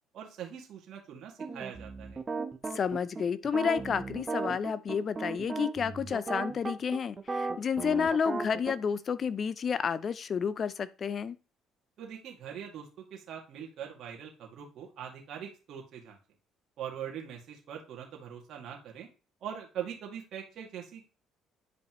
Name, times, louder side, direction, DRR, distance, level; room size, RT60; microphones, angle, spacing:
voice 1, 0.1-2.2 12.0-16.2 16.8-19.1 19.4-21.0, right 9 dB, 60° right, 2.3 m, -42 dB
sound 1, 1.4-8.7, right 4 dB, 30° right, 1.3 m, -36 dB
voice 2, 2.7-11.4, left 6 dB, 45° left, 0.7 m, -30 dB
9.8 x 5.2 x 3.2 m
hypercardioid pair, 55°, 0 cm